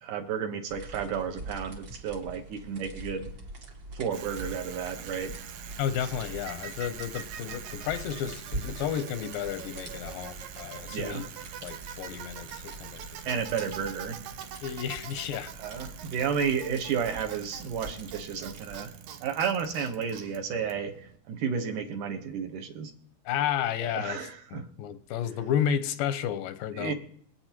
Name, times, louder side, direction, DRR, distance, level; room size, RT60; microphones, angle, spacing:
voice 1, 0.0-3.3 3.9-5.4 10.9-11.3 13.2-14.2 15.6-18.9 19.2-22.9 23.8-24.7 26.7-26.9, right 7 dB, 70° right, 2.6 m, -32 dB
sound 1, 0.7-18.8, right 2 dB, 40° right, 1.8 m, -44 dB
Bicycle, 4.1-21.2, right 9 dB, 85° right, 2.6 m, -44 dB
voice 2, 5.8-11.2 11.6-13.4 14.6-15.5 23.3-24.2 24.5-26.9, left 9 dB, 90° left, 2.4 m, -32 dB
26.0 x 8.7 x 3.0 m
omnidirectional pair, 4.0 m